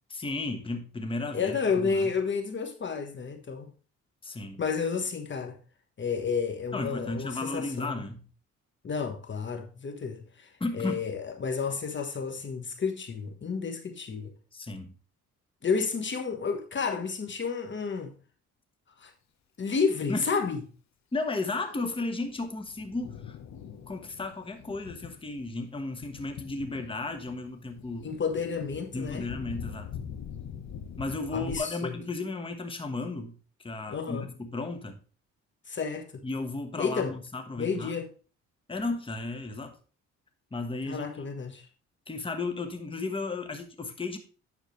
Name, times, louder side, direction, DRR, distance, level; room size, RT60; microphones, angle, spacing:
voice 1, 0.1-2.1 4.2-4.6 6.7-8.3 10.6-11.0 14.5-14.9 20.1-20.2 21.1-23.4 23.9-28.1 28.9-29.9 31.0-35.0 36.2-37.9 38.7-39.8 40.5-41.2 42.1-44.2, left 3 dB, 15° left, 1.2 m, -34 dB
voice 2, 1.3-3.7 4.6-5.6 6.0-8.0 8.8-10.5 10.7-14.3 15.6-18.1 19.0-19.1 19.6-20.6 28.0-29.2 31.3-32.0 33.9-34.3 35.7-36.2 36.8-37.1 37.6-38.1 40.9-41.6, left 5 dB, 40° left, 1.2 m, -31 dB
Thunder, 21.8-31.6, left 8 dB, 65° left, 1.1 m, -44 dB
9.3 x 6.4 x 3.2 m
cardioid pair, 90°, 30 cm